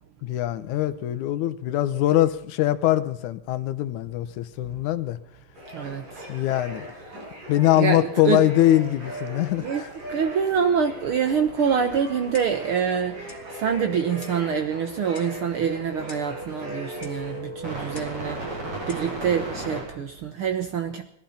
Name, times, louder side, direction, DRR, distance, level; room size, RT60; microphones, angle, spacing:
voice 1, 0.2-5.2 6.3-6.9 7.5-9.9, left 14 dB, 75° left, 2.3 m, -22 dB
sound 1, 5.5-17.4, equal, 85° right, 6.9 m, -40 dB
voice 2, 5.7-6.0 7.8-8.4 9.6-9.8 10.1-18.4 18.9-21.0, right 7 dB, 70° right, 1.3 m, -26 dB
sound 2, 6.1-6.2 6.4-19.8, right 1 dB, 40° right, 6.7 m, -39 dB
Clock, 12.3-12.7 13.3-13.5 14.2-14.5 15.1-15.4 16.1-16.4 17.0-17.2 17.9-18.2 18.9-19.1, left 3 dB, 25° left, 1.2 m, -46 dB
19.0 x 13.5 x 5.7 m
omnidirectional pair, 3.8 m